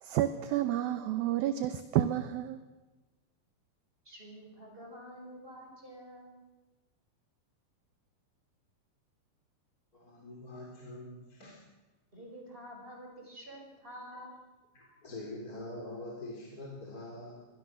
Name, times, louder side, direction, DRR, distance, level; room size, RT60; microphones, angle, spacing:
voice 1, 0.0-2.6, right 12 dB, 75° right, 10 dB, 2.5 m, -30 dB
voice 2, 4.1-6.4 12.1-14.4, equal, 15° right, 1 dB, 5.3 m, -48 dB
voice 3, 9.9-11.6 14.7-17.5, left 2 dB, 25° left, -2 dB, 3.8 m, -44 dB
24.0 x 20.5 x 6.4 m, 1.1 s
omnidirectional pair, 4.6 m